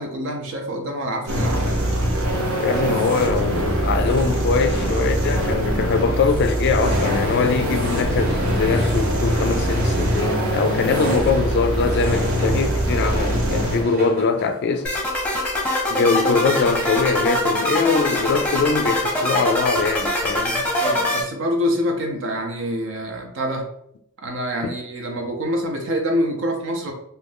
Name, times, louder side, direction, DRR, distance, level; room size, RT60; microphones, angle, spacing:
voice 1, 0.0-1.6 20.8-23.7 24.2-26.9, equal, 60° right, 0.6 m, -26 dB
sound 1, 1.3-13.8, right 1 dB, 80° right, 1.1 m, -22 dB
voice 2, 2.6-14.9 15.9-20.7 24.6-24.7, left 4 dB, 50° left, 0.3 m, -22 dB
sound 2, 6.8-15.0, left 1 dB, 45° right, 0.9 m, -32 dB
sound 3, 14.8-21.2, left 1 dB, 5° left, 0.8 m, -23 dB
2.6 x 2.5 x 3.4 m
head